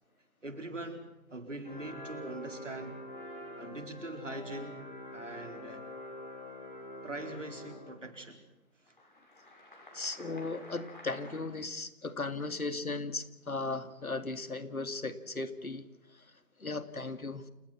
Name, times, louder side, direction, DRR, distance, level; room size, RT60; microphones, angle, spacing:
voice 1, 0.4-2.9 3.6-4.8 5.1-5.8 7.0-8.4, right 2 dB, 55° right, 6 dB, 4.7 m, -42 dB
sound 1, 1.6-8.1 8.9-11.4, left 1 dB, 35° left, 7.3 m, -46 dB
voice 2, 9.9-15.8 16.1-16.2 16.6-17.5, left 3 dB, 70° left, 11 dB, 2.6 m, -37 dB
29.5 x 19.5 x 5.9 m, 0.97 s
figure-of-eight pair, 180°, 43 cm